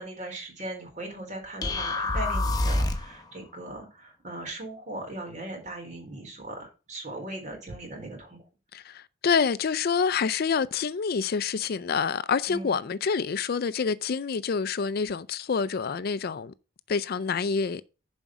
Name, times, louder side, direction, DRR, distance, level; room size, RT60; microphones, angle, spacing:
voice 1, 0.0-8.4 12.5-12.8, right 1 dB, 40° right, 3.8 m, -39 dB
sound 1, 1.6-3.2, left 2 dB, 20° left, 1.2 m, -26 dB
voice 2, 8.7-16.5 16.9-17.8, left 5 dB, 50° left, 0.4 m, -27 dB
7.3 x 5.2 x 5.9 m
head